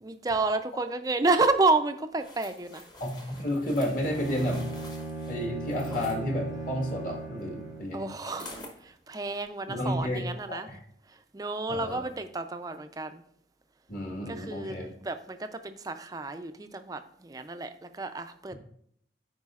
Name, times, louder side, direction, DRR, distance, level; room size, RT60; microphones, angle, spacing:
voice 1, 0.0-2.8 7.9-10.7 11.3-13.2 14.3-18.5, right 3 dB, 20° right, 8 dB, 0.4 m, -30 dB
sound 1, 2.2-6.2 8.2-8.8 9.3-9.4, left 1 dB, 25° left, 0.9 m, -47 dB
voice 2, 3.0-4.6 5.3-8.1 9.7-10.8 11.7-12.1 13.9-14.9, equal, 45° left, 1 dB, 1.6 m, -31 dB
Bowed string instrument, 3.9-8.0, right 3 dB, 85° left, 3.1 m, -38 dB
13.5 x 4.9 x 2.4 m, 0.68 s
head